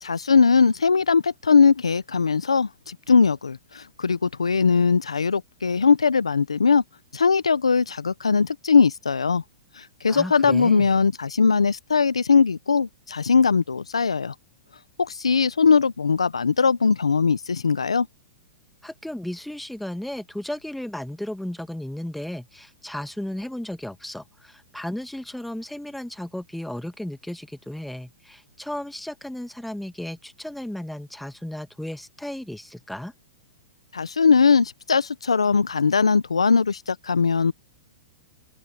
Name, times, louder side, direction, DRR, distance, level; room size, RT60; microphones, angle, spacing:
voice 1, 0.0-6.8 7.1-9.4 9.8-14.3 15.0-18.1 33.9-37.5, left 5 dB, 85° left, 1.1 m, -20 dB
voice 2, 10.1-10.9 18.8-33.1, left 1 dB, ahead, 1.6 m, -34 dB
open air
hypercardioid pair, 115°, 3 cm